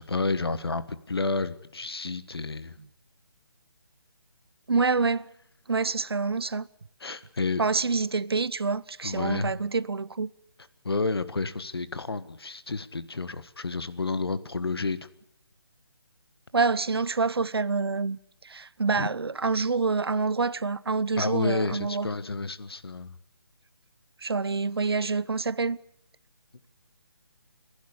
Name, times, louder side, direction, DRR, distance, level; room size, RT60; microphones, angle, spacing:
voice 1, 0.0-2.8 7.0-7.7 9.0-9.6 10.8-15.0 19.0-19.1 21.2-23.1, left 3 dB, 75° left, 1.5 m, -30 dB
voice 2, 4.7-5.3 5.7-6.7 7.6-10.3 16.5-18.2 18.4-22.1 24.2-25.8, right 4 dB, 80° right, 0.8 m, -27 dB
29.5 x 11.5 x 8.6 m
figure-of-eight pair, 155°, 13 cm